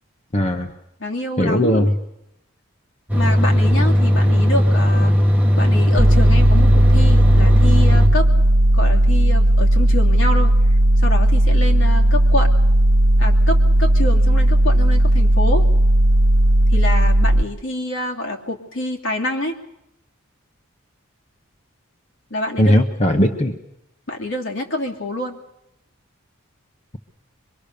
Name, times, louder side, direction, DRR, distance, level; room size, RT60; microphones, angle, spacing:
voice 1, 0.3-0.7 1.4-1.9 22.6-23.6, equal, 30° left, 4 dB, 1.0 m, -17 dB
voice 2, 1.0-1.9 3.1-5.1 5.6-8.3 8.7-10.5 11.0-12.5 13.2-15.7 16.7-19.5 22.3-22.8 24.1-25.4, left 1 dB, 65° left, 1 dB, 2.7 m, -26 dB
sound 1, 3.1-8.1, equal, 10° right, 1.5 m, -16 dB
sound 2, 6.0-17.4, right 1 dB, 85° right, 0.9 m, -15 dB
24.0 x 23.0 x 6.8 m, 0.85 s
head